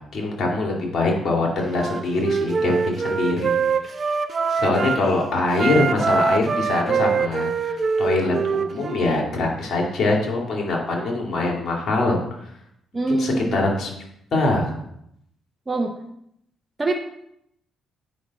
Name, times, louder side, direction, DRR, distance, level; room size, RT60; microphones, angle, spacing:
voice 1, 0.1-3.6 4.5-12.2 13.1-13.9 14.3-14.7, left 2 dB, 60° left, 0 dB, 2.2 m, -23 dB
Wind instrument woodwind instrument, 1.7-5.1 5.5-9.2, right 5 dB, 40° right, 0.6 m, -24 dB
voice 2, 12.9-13.5 15.7-15.9 16.8-16.9, right 3 dB, 25° right, 2 dB, 0.8 m, -23 dB
8.6 x 5.8 x 4.1 m, 0.77 s
cardioid pair, 90°, 0 cm